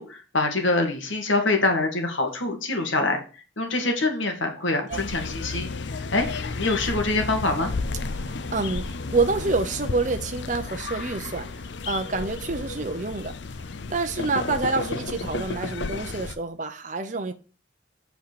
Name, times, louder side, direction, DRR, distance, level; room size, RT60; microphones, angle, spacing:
voice 1, 0.0-3.2 3.6-6.3 6.6-7.7, left 2 dB, 80° left, 2.0 m, -25 dB
sound 1, 4.9-16.3, left 3 dB, 65° left, 0.6 m, -32 dB
voice 2, 8.1-13.4 13.9-17.3, right 3 dB, 40° right, 0.6 m, -28 dB
8.3 x 4.5 x 6.8 m
head